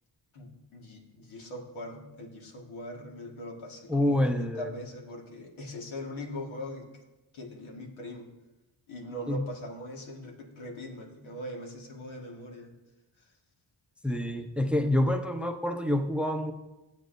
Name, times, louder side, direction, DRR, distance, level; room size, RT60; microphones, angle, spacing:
voice 1, 0.3-6.9 7.3-8.3 8.9-12.7 13.2-13.3, left 1 dB, 85° left, 0 dB, 1.9 m, -41 dB
voice 2, 3.9-4.7 9.3-9.5 14.0-16.5, left 1 dB, ahead, 6 dB, 0.6 m, -27 dB
15.5 x 8.1 x 2.6 m, 1.1 s
cardioid pair, 85°, 46 cm